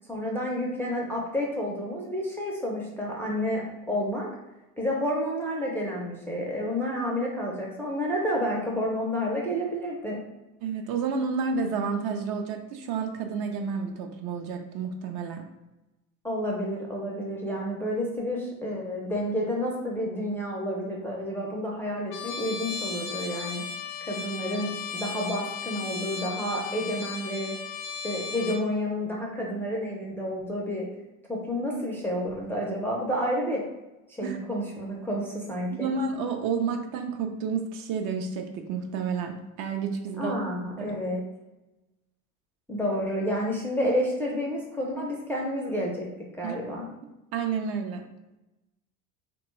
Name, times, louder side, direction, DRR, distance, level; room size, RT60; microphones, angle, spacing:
voice 1, 0.1-4.3 4.8-10.2 16.2-23.6 24.1-27.6 28.0-30.9 31.3-33.6 34.2-35.9 40.2-41.2 42.7-46.1 46.4-46.9, equal, 5° left, -3 dB, 0.4 m, -30 dB
voice 2, 10.6-15.4 34.2-34.4 35.7-40.4 40.8-40.9 46.4-46.6 47.3-48.0, right 5 dB, 60° right, 5 dB, 0.5 m, -30 dB
Trumpet, 22.1-28.6, left 6 dB, 75° left, 0.7 m, -36 dB
2.9 x 2.2 x 3.1 m, 1.0 s
supercardioid pair, 95°, 44 cm